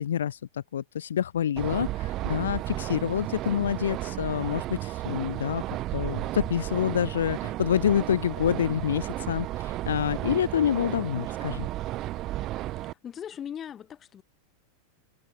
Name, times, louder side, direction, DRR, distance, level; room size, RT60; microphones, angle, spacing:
voice 1, 0.0-5.6 5.9-11.7, left 9 dB, 65° left, 0.8 m, -27 dB
sound 1, 1.6-12.9, right 15 dB, 35° right, 0.6 m, -33 dB
voice 2, 12.8-14.2, left 9 dB, 25° left, 6.2 m, -39 dB
figure-of-eight pair, 90°, 0 cm